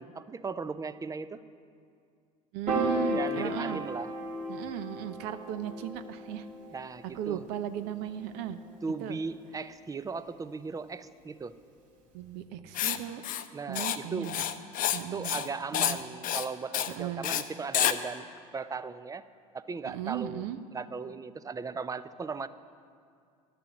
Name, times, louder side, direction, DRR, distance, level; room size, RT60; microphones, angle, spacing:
voice 1, 0.0-1.4 3.1-4.1 6.7-7.4 8.8-11.5 13.5-14.3 15.1-18.2 18.5-19.2 19.5-20.4 20.7-22.5, right 4 dB, 20° right, 14 dB, 0.6 m, -37 dB
voice 2, 2.5-3.8 4.5-6.5 7.1-8.6 9.0-9.2 12.1-13.2 13.7-14.4 14.9-15.4 15.7-16.0 16.9-17.3 19.9-20.6, right 10 dB, 60° right, 10 dB, 0.8 m, -36 dB
Piano, 2.7-9.0, equal, 45° right, 3.5 m, -35 dB
Writing, 12.7-13.0 13.2-13.4 13.7-14.0 14.2-15.0 15.2-15.5 15.7-16.0 16.2-16.5 16.7-16.9 17.2-17.4 17.7-17.9, left 11 dB, 45° left, 0.7 m, -28 dB
12.0 x 6.8 x 9.6 m, 2.3 s
hypercardioid pair, 70°, 19 cm